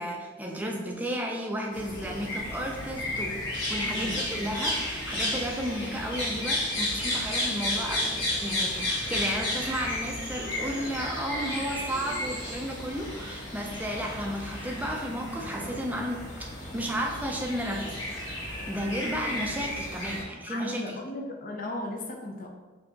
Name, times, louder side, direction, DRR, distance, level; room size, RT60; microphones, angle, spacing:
voice 1, 0.0-3.4 3.7-16.3 16.7-17.9 18.5-21.0, equal, 10° right, 0 dB, 0.4 m, -33 dB
sound 1, 1.7-20.2, left 1 dB, 65° left, 1.3 m, -33 dB
voice 2, 3.8-4.2 20.5-22.5, left 1 dB, 45° left, 1 dB, 0.5 m, -36 dB
4.1 x 2.8 x 2.8 m, 1.4 s
head